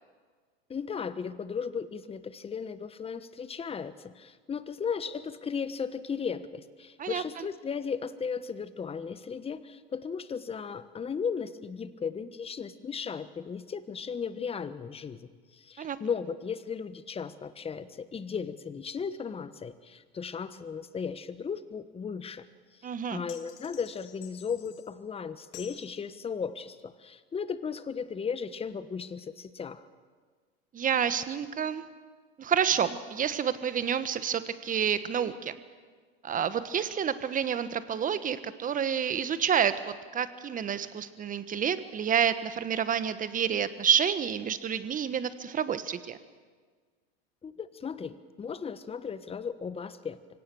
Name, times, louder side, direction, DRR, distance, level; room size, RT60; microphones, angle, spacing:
voice 1, 0.7-22.4 23.1-29.8 47.4-50.2, left 6 dB, 20° left, 13 dB, 1.1 m, -36 dB
voice 2, 7.0-7.5 15.8-16.0 22.8-23.2 30.7-31.8 32.4-35.6 36.2-46.2, right 8 dB, 25° right, 13 dB, 1.3 m, -29 dB
sound 1, 23.3-24.9 25.5-25.9, left 10 dB, 55° left, 2.8 m, -50 dB
24.5 x 17.5 x 7.0 m, 1.5 s
hypercardioid pair, 105°, 31 cm